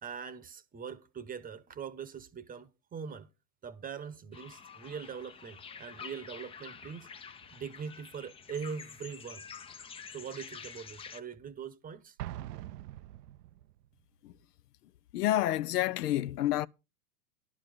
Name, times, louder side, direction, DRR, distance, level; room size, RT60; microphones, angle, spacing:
voice 1, 0.0-3.3 3.6-7.1 7.5-9.5 10.1-12.2, right 6 dB, 20° right, 0.9 m, -42 dB
sound 1, 4.3-11.2, left 6 dB, 10° left, 0.5 m, -48 dB
Explosion, 12.2-13.9, right 13 dB, 75° right, 0.6 m, -43 dB
voice 2, 15.1-16.7, left 14 dB, 75° left, 0.7 m, -29 dB
11.5 x 7.4 x 5.0 m
hypercardioid pair, 110°, 47 cm